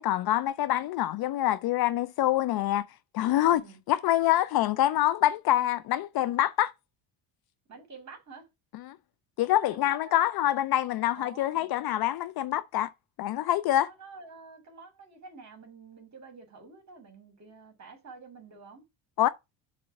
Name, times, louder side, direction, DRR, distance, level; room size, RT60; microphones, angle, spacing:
voice 1, 0.0-2.9 3.1-3.6 3.9-6.7 8.9-9.0 9.4-12.9 13.2-13.9 19.2-19.3, left 13 dB, 55° left, 0.5 m, -25 dB
voice 2, 3.4-3.8 7.7-8.5 9.7-10.2 11.2-11.7 13.7-18.8, right 4 dB, 35° right, 3.3 m, -49 dB
7.1 x 3.4 x 5.7 m
cardioid pair, 110°, 45 cm